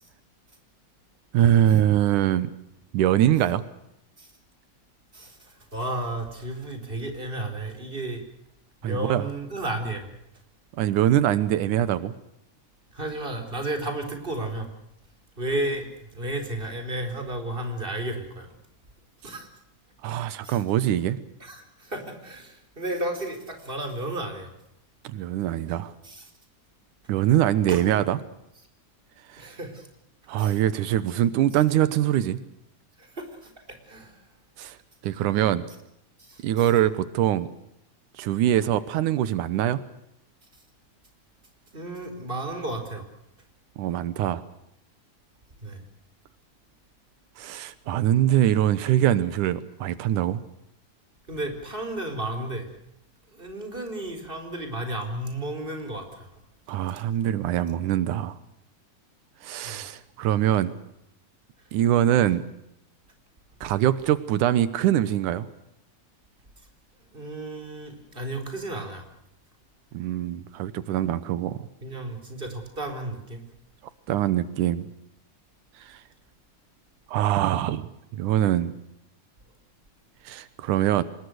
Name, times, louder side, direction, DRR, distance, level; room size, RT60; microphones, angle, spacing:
voice 1, 1.3-2.5 2.9-3.6 8.8-9.2 10.8-12.1 20.0-21.2 25.0-25.9 27.1-28.2 29.3-29.5 30.3-32.4 34.6-34.8 35.0-35.7 36.4-37.5 38.2-39.8 43.8-44.4 47.4-50.4 56.7-58.4 59.4-60.7 61.7-62.4 63.6-65.5 69.9-71.7 74.1-74.9 75.8-76.0 77.1-78.8 80.3-81.0, right 12 dB, 90° right, 15 dB, 2.6 m, -23 dB
voice 2, 5.1-8.2 8.8-10.1 12.9-14.7 15.4-18.5 19.2-19.5 20.4-20.6 21.4-24.5 26.0-26.3 27.7-27.8 29.4-29.9 30.4-30.6 33.0-34.2 36.2-36.8 41.7-43.0 45.6-45.8 51.3-52.7 53.3-56.3 59.6-59.8 67.1-69.1 71.8-73.4, right 1 dB, 15° right, 6 dB, 4.4 m, -33 dB
25.5 x 21.0 x 6.5 m, 0.80 s
omnidirectional pair, 3.5 m